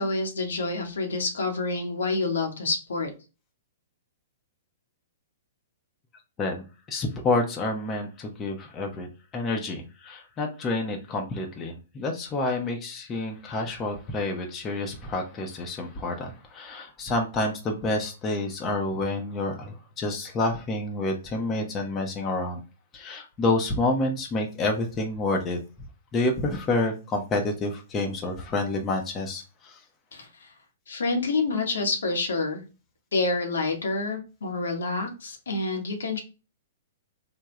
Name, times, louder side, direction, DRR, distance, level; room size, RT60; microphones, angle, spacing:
voice 1, 0.0-3.1 30.1-30.5 30.9-32.6 33.1-36.2, left 3 dB, 75° left, 2 dB, 0.9 m, -28 dB
voice 2, 6.4-9.1 9.3-22.6 22.9-25.6 26.1-29.8, left 2 dB, 25° left, 2 dB, 0.8 m, -28 dB
3.5 x 2.2 x 3.0 m, 0.31 s
hypercardioid pair, 115°, 0 cm